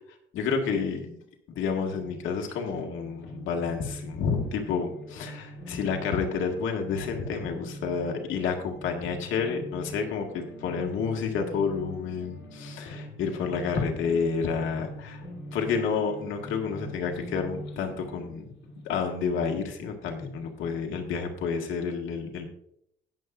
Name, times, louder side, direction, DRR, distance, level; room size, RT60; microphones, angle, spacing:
voice 1, 0.3-1.2 1.5-15.2 15.5-18.5 18.8-22.5, left 5 dB, 85° left, 2 dB, 1.8 m, -30 dB
sound 1, 1.6-20.8, equal, 65° left, 3.5 m, -44 dB
19.0 x 7.1 x 2.5 m, 0.72 s
cardioid pair, 90°, 20 cm